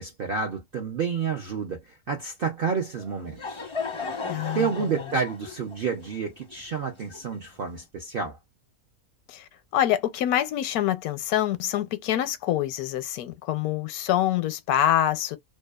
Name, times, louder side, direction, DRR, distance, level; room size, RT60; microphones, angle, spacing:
voice 1, 0.0-3.7 4.2-8.4, right 5 dB, 70° right, 0.5 m, -30 dB
Laughter / Crowd, 3.0-7.7, left 4 dB, 35° left, 0.5 m, -36 dB
voice 2, 4.3-4.9 9.3-15.4, left 12 dB, 85° left, 1.1 m, -26 dB
2.7 x 2.2 x 2.2 m
omnidirectional pair, 1.5 m